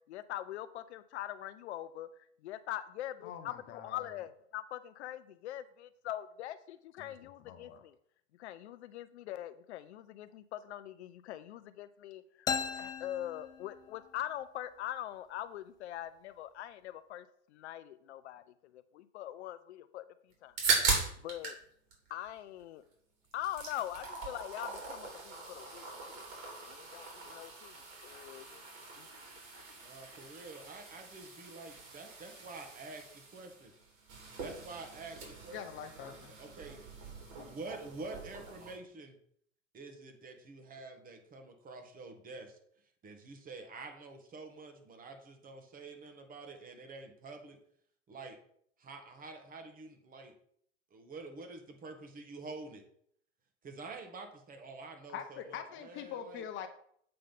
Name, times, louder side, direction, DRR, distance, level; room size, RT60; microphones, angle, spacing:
voice 1, 0.1-2.1 2.4-7.9 8.4-12.5 12.7-17.3 17.5-18.4 18.7-20.0 20.4-20.5 21.2-21.6 22.1-22.8 23.3-26.2 26.7-27.7 28.0-28.6 29.0-29.1, left 12 dB, 65° left, 12 dB, 0.6 m, -42 dB
voice 2, 3.2-4.1 7.0-7.2 7.4-7.8 35.5-36.3 55.1-56.7, left 8 dB, 35° left, 8 dB, 0.8 m, -44 dB
sound 1, 12.5-14.2, left 6 dB, 10° left, 0.3 m, -37 dB
sound 2, 20.3-21.6 21.9-22.9 23.2-38.8, right 4 dB, 55° right, 3.3 m, -40 dB
voice 3, 29.8-33.0 33.3-33.7 34.4-35.6 36.4-39.2 39.7-42.6 43.0-47.6 48.1-48.4 48.8-50.3 50.9-52.8 53.6-56.4, right 3 dB, 25° right, 6 dB, 1.4 m, -48 dB
7.8 x 3.7 x 5.3 m, 0.66 s
hypercardioid pair, 100°, 36 cm